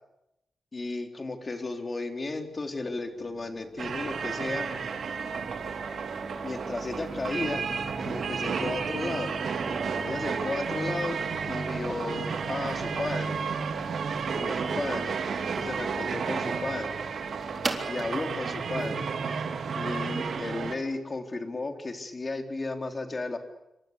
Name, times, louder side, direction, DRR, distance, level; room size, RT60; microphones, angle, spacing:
voice 1, 0.7-4.7 6.4-7.6 8.0-9.3 10.0-11.2 11.5-13.4 14.3-15.1 15.6-17.0 17.9-19.0 19.8-23.4, left 3 dB, 30° left, 5 dB, 3.8 m, -34 dB
sound 1, 2.5-20.2, right 3 dB, 30° right, 3.7 m, -42 dB
sound 2, 3.8-20.8, right 5 dB, 70° right, 3.3 m, -32 dB
27.5 x 26.0 x 8.3 m, 0.87 s
wide cardioid pair, 110°, 0 cm